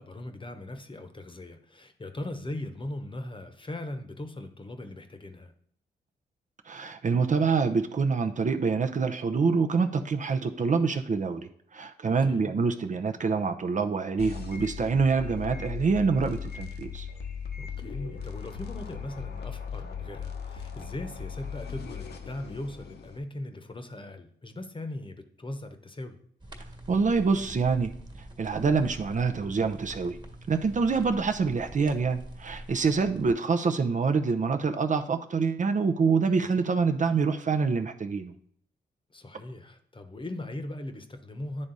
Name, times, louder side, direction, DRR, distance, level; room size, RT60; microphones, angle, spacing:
voice 1, 0.0-5.5 12.2-12.5 17.6-26.2 39.1-41.7, left 1 dB, 25° left, 7 dB, 1.0 m, -39 dB
voice 2, 6.7-17.1 26.9-27.9 28.4-30.2 30.5-38.3, right 5 dB, 45° right, 7 dB, 0.6 m, -26 dB
sound 1, 14.2-23.2, left 7 dB, 60° left, 0.9 m, -38 dB
sound 2, 26.4-33.3, right 1 dB, 25° right, 1.6 m, -45 dB
9.8 x 3.5 x 4.0 m, 0.65 s
supercardioid pair, 45°, 19 cm